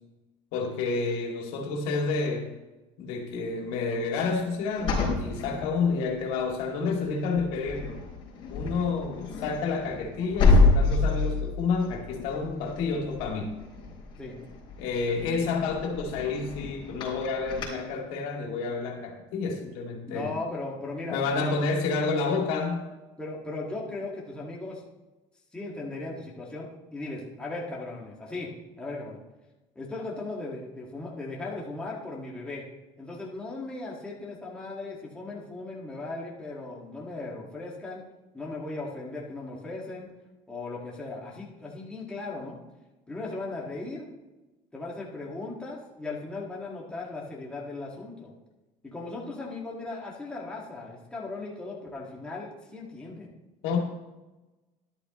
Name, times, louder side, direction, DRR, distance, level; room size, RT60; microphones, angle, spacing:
voice 1, 0.5-2.5 3.0-8.0 8.5-13.5 14.8-20.3 21.1-22.8 53.6-53.8, left 4 dB, 85° left, 1 dB, 2.3 m, -29 dB
sound 1, 4.8-6.3 6.8-7.1 7.4-17.7, left 3 dB, 35° left, 4.0 m, -28 dB
voice 2, 20.1-21.5 23.2-24.8 25.5-28.5 28.8-29.2 29.7-32.6 33.0-38.0 38.3-40.1 40.5-42.6 43.1-44.1 44.7-48.3 48.8-53.3, left 2 dB, 5° left, -4 dB, 1.8 m, -37 dB
13.0 x 11.0 x 3.0 m, 1.1 s
cardioid pair, 165°, 14 cm